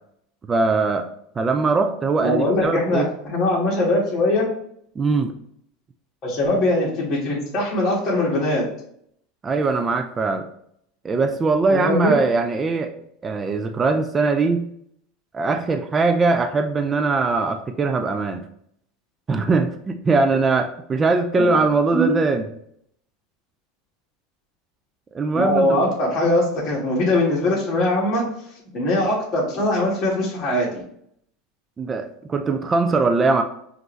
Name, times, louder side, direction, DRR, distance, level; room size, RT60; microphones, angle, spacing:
voice 1, 0.5-1.1 1.4-3.1 5.0-5.3 9.4-10.4 11.0-12.9 13.2-14.7 15.3-18.4 19.3-22.4 25.1-25.8 31.8-33.4, right 3 dB, 25° right, 6 dB, 0.4 m, -21 dB
voice 2, 2.2-4.5 6.2-8.6 11.7-12.2 21.4-21.5 21.9-22.1 25.3-28.2 28.7-30.8, left 1 dB, 40° left, -5 dB, 1.6 m, -21 dB
5.2 x 2.6 x 3.1 m, 0.71 s
supercardioid pair, 110°, 0 cm